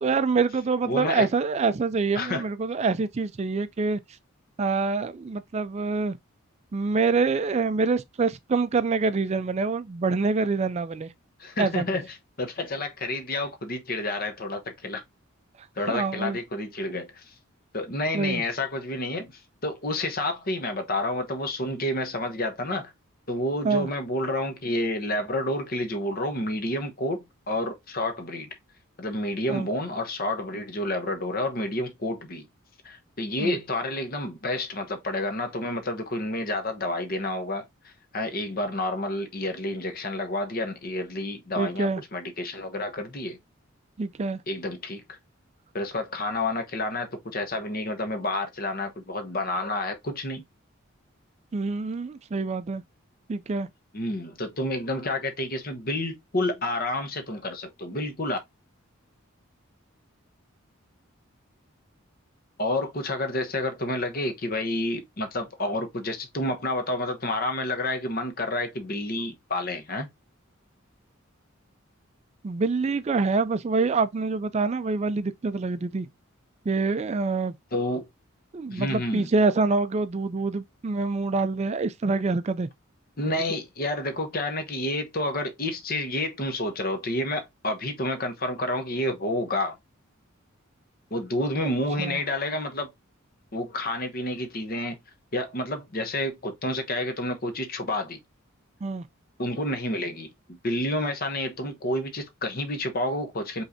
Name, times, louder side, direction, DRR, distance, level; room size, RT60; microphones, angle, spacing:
voice 1, 0.0-4.0 4.6-6.2 6.7-11.1 11.6-11.8 15.9-16.4 18.1-18.4 23.6-23.9 29.5-29.7 33.4-33.6 41.6-42.0 44.0-44.4 51.5-52.8 53.3-53.7 72.4-76.1 76.7-77.5 78.5-82.7 91.6-92.2 98.8-99.0, right 4 dB, 30° right, 0.3 m, -26 dB
voice 2, 0.9-1.3 2.1-2.5 11.4-12.1 12.4-15.0 15.8-17.3 17.7-22.9 23.3-28.6 29.0-32.5 32.8-43.4 44.5-45.2 45.7-50.4 53.9-58.4 62.6-70.1 77.7-78.1 78.7-79.3 83.2-89.8 91.1-92.9 93.5-95.0 95.3-98.2 99.4-103.6, left 1 dB, 45° left, 1.0 m, -29 dB
5.4 x 3.2 x 2.6 m
head